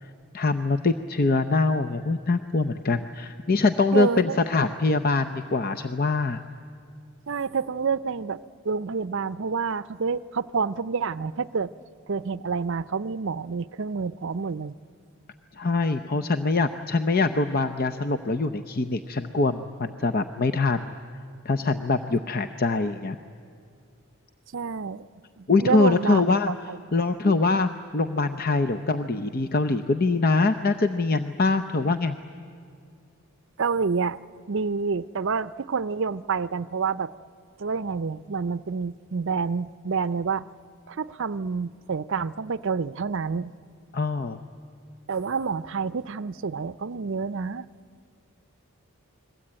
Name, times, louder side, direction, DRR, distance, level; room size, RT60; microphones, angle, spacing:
voice 1, 0.0-6.4 15.6-20.9 21.4-23.2 25.5-26.6 26.9-32.2 43.9-44.4, left 3 dB, 45° left, 9 dB, 0.7 m, -24 dB
voice 2, 3.9-4.4 7.3-11.7 12.1-14.7 22.1-22.3 24.5-25.1 25.4-26.8 27.2-27.3 33.6-34.2 34.5-37.1 37.6-40.4 40.9-43.5 45.1-47.7, right 5 dB, 55° right, 16 dB, 0.6 m, -28 dB
29.5 x 21.5 x 8.8 m, 2.3 s
head